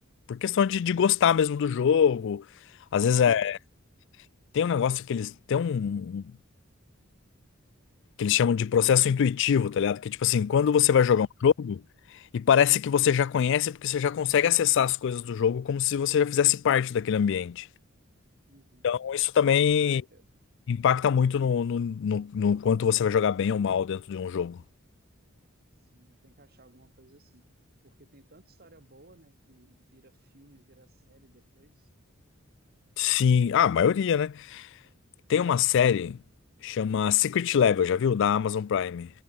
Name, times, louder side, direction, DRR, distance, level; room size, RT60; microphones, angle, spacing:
voice 1, 0.3-2.4 2.9-3.6 4.5-6.3 8.2-11.8 12.3-17.7 18.8-20.0 20.7-24.6 33.0-34.7 35.3-36.2 36.6-39.1, left 8 dB, 60° left, 0.3 m, -24 dB
voice 2, 3.1-3.5 11.1-11.3 18.5-18.9 19.8-20.2 25.8-27.6 27.8-31.9, right 1 dB, 50° right, 6.5 m, -59 dB
head